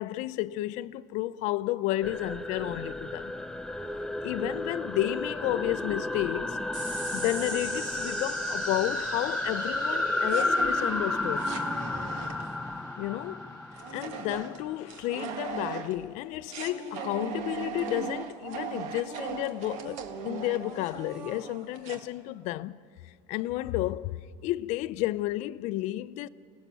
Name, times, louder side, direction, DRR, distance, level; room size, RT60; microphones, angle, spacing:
voice 1, 0.0-3.3 4.2-6.6 7.1-11.5 13.0-13.5 13.9-22.8 23.3-24.2 24.4-26.3, left 16 dB, 65° left, 0.6 m, -32 dB
sound 1, 2.0-14.7, left 2 dB, 5° left, 0.6 m, -32 dB
sound 2, 6.7-13.5, right 3 dB, 85° right, 6.8 m, -43 dB
sound 3, 10.3-12.8 13.7-16.0 16.5-22.1, right 7 dB, 60° right, 1.7 m, -39 dB
27.5 x 18.5 x 7.0 m
cardioid pair, 130°, 13 cm